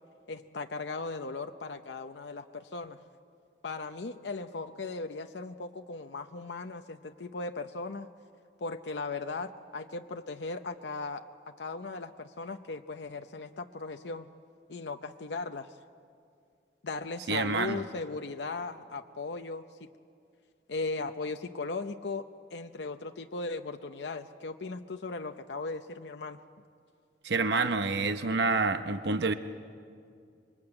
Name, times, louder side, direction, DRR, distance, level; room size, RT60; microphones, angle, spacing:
voice 1, 0.3-3.0 3.6-8.1 8.6-11.2 11.6-14.3 14.7-15.7 16.8-19.9 20.7-22.3 22.5-26.4, left 3 dB, 75° left, 6 dB, 0.7 m, -37 dB
voice 2, 17.3-17.8 27.2-29.3, right 3 dB, 70° right, 9 dB, 0.9 m, -28 dB
26.0 x 23.5 x 8.8 m, 2.3 s
head